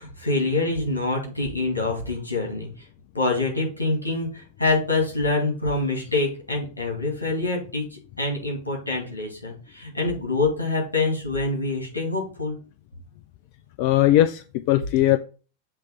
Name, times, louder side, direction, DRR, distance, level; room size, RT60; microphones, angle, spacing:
voice 1, 0.0-2.7 3.1-7.8 8.2-12.6, left 2 dB, 80° left, -1 dB, 2.5 m, -25 dB
voice 2, 13.8-15.2, left 14 dB, 45° left, 12 dB, 0.4 m, -19 dB
7.4 x 3.2 x 5.3 m, 0.36 s
figure-of-eight pair, 90°, 0 cm